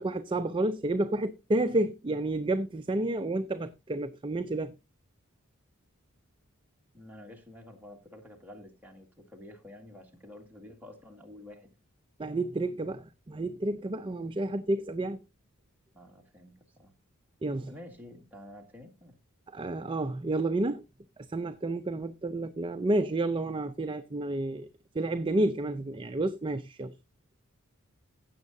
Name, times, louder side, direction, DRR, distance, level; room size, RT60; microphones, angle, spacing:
voice 1, 0.0-4.7 12.2-15.2 17.4-17.7 19.5-20.8 21.3-24.7 24.9-26.9, right 2 dB, 25° right, 0.5 m, -30 dB
voice 2, 6.9-11.8 15.9-16.9 17.7-19.2, left 1 dB, 10° right, 2.0 m, -50 dB
16.0 x 7.3 x 2.7 m
head